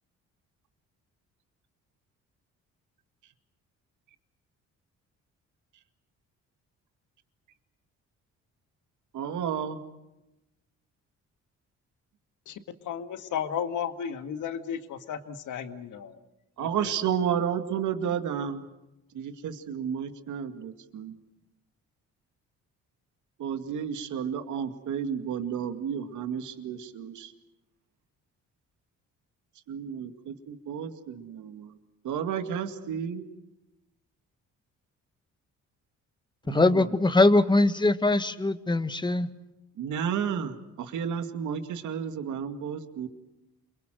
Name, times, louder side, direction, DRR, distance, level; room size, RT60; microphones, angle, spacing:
voice 1, 9.1-9.8 16.6-18.6 19.1-21.1 23.4-27.3 29.7-31.7 32.0-33.2 36.5-36.9 39.8-43.1, right 8 dB, 80° right, 7 dB, 2.2 m, -32 dB
voice 2, 12.9-16.2 16.6-16.9, left 8 dB, 80° left, 8 dB, 2.0 m, -34 dB
voice 3, 36.5-39.3, left 2 dB, 15° left, 10 dB, 1.6 m, -22 dB
28.5 x 22.0 x 7.8 m, 0.96 s
cardioid pair, 90°, 30 cm